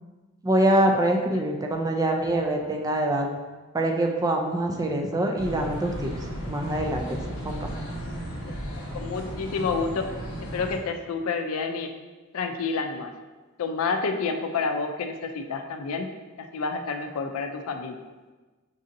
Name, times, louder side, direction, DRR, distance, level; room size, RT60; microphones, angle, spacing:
voice 1, 0.4-3.3 3.7-6.1 6.5-7.2 7.4-7.7, right 1 dB, 15° right, 2 dB, 0.3 m, -24 dB
sound 1, 5.4-10.8, equal, 55° left, 1.0 m, -35 dB
voice 2, 8.5-10.1 10.4-11.9 12.3-13.1 13.6-16.1 16.4-18.1, left 4 dB, 80° left, 6 dB, 0.4 m, -29 dB
6.0 x 2.7 x 2.5 m, 1.2 s
head